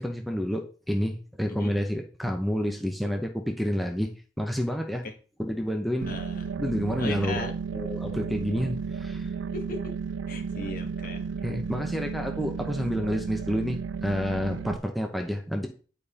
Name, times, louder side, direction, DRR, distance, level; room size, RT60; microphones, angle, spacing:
voice 1, 0.0-4.1 4.4-5.0 5.4-6.1 6.6-9.3 11.4-15.7, equal, ahead, 2 dB, 0.8 m, -29 dB
sound 1, 6.0-14.8, right 5 dB, 85° right, 0.4 m, -33 dB
voice 2, 6.1-6.6 7.0-7.5 9.5-9.9 10.3-11.3, left 2 dB, 50° left, 5 dB, 1.3 m, -37 dB
9.5 x 5.1 x 4.2 m, 0.38 s
head